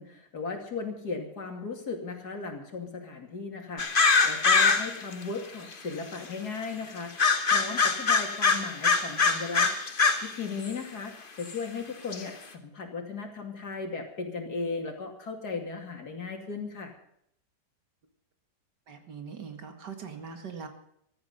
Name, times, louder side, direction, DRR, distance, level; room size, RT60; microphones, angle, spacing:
voice 1, 0.0-9.7 10.3-16.9, left 4 dB, 65° left, 3 dB, 3.1 m, -37 dB
sound 1, 3.8-5.1 5.7-5.8 7.2-10.3 10.6-10.7 11.5-11.6 12.1-12.2, left 4 dB, 35° left, 1.4 m, -23 dB
voice 2, 18.9-20.7, right 6 dB, 80° right, 6 dB, 2.6 m, -41 dB
15.5 x 13.5 x 5.4 m, 0.72 s
omnidirectional pair, 1.8 m